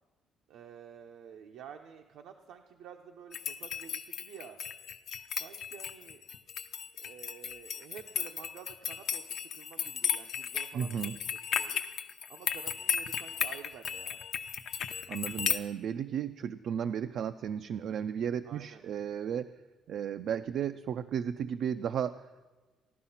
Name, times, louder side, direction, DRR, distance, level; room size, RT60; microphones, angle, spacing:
voice 1, 0.5-4.6 5.4-6.2 7.0-11.2 11.6-11.9 12.3-14.2 18.4-18.8, right 8 dB, 80° right, 4 dB, 0.8 m, -50 dB
sound 1, 3.3-15.6, left 8 dB, 55° left, 0.7 m, -35 dB
voice 2, 10.7-11.2 15.1-19.5 19.9-22.4, right 8 dB, 60° right, 9 dB, 0.4 m, -34 dB
15.5 x 11.5 x 5.7 m, 1.3 s
cardioid pair, 150°, 0 cm